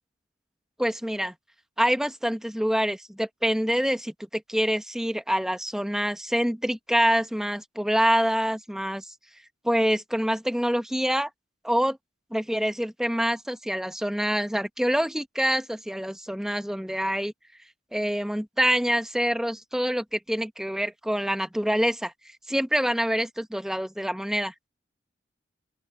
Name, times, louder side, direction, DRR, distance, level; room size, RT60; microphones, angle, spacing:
voice 1, 0.8-1.3 1.8-9.1 9.6-11.3 11.6-12.0 12.3-17.3 17.9-22.1 22.5-24.5, equal, 5° right, 0.9 m, -26 dB
open air
head